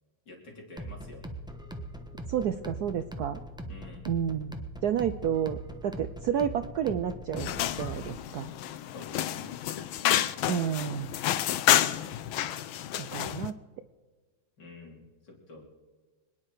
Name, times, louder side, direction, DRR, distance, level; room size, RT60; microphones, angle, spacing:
voice 1, 0.3-1.2 3.7-4.1 8.9-9.6 14.6-15.6, left 3 dB, 55° left, -1 dB, 4.0 m, -48 dB
sound 1, 0.8-8.3, right 1 dB, 5° right, 0.7 m, -41 dB
voice 2, 2.3-3.4 4.1-4.5 4.8-7.5 7.8-8.5 10.5-11.1 13.0-13.6, right 9 dB, 70° right, 10 dB, 1.0 m, -30 dB
sound 2, 7.4-13.5, left 12 dB, 80° left, 1.5 m, -29 dB
26.0 x 9.9 x 4.8 m, 1.4 s
omnidirectional pair, 2.2 m